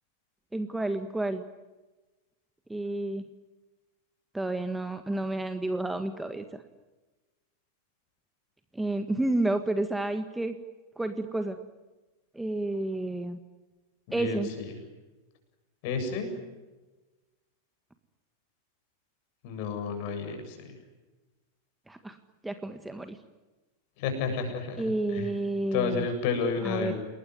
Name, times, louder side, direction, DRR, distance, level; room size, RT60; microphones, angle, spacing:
voice 1, 0.5-1.4 2.7-3.2 4.3-6.6 8.7-10.6 11.0-11.6 12.3-13.4 14.1-14.5 21.9-22.2 22.4-23.2 24.8-26.1 26.6-26.9, right 2 dB, 5° right, 8 dB, 1.7 m, -30 dB
voice 2, 14.1-14.7 15.8-16.3 19.4-20.8 24.0-25.3 25.7-27.0, left 5 dB, 45° left, 6 dB, 7.8 m, -31 dB
29.5 x 20.5 x 9.7 m, 1.2 s
figure-of-eight pair, 90°, 0 cm